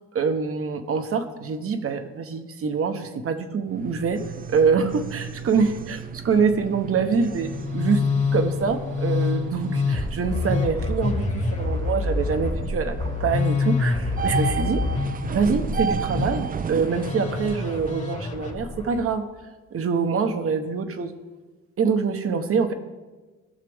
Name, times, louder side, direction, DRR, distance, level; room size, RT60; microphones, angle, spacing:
voice 1, 0.1-4.2 4.5-8.0 8.3-14.8 15.3-19.3 19.7-21.1 21.8-22.7, right 5 dB, 50° right, 7 dB, 1.1 m, -25 dB
sound 1, 3.7-18.1, right 6 dB, 30° right, 0.4 m, -34 dB
Musical instrument, 7.3-19.1, left 4 dB, 25° left, 1.5 m, -27 dB
16.5 x 6.6 x 3.6 m, 1.3 s
cardioid pair, 90°, 30 cm